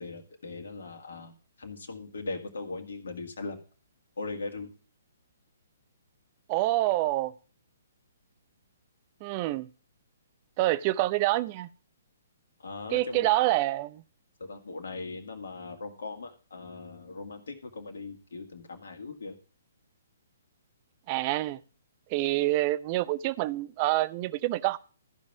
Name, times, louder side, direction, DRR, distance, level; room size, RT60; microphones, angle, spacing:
voice 1, 0.0-1.3 1.6-3.6 4.2-4.7 12.6-13.5 14.4-19.4, left 3 dB, 70° left, 2.0 m, -39 dB
voice 2, 6.5-7.3 9.2-9.7 10.6-11.7 12.9-14.0 21.1-21.6 22.1-24.8, right 17 dB, 35° right, 0.6 m, -27 dB
13.5 x 5.3 x 5.9 m
figure-of-eight pair, 130°, 0 cm